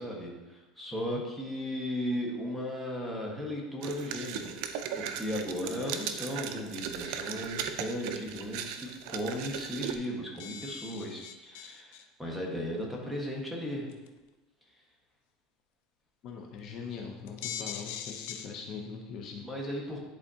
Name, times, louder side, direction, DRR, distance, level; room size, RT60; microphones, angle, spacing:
voice 1, 0.0-13.9 19.4-20.0, equal, ahead, -3 dB, 1.5 m, -36 dB
voice 2, 0.9-1.2 16.2-19.7, left 5 dB, 50° left, 2 dB, 0.8 m, -42 dB
sound 1, 3.8-10.0, right 8 dB, 65° right, 0.5 m, -37 dB
sound 2, 9.7-9.8 10.0-10.1 10.3-12.0 12.8-12.9 13.9-14.2 16.3-16.4 16.8-16.9 17.3-18.5, left 9 dB, 75° left, 0.6 m, -41 dB
10.5 x 4.1 x 2.8 m, 1.1 s
supercardioid pair, 130°, 0 cm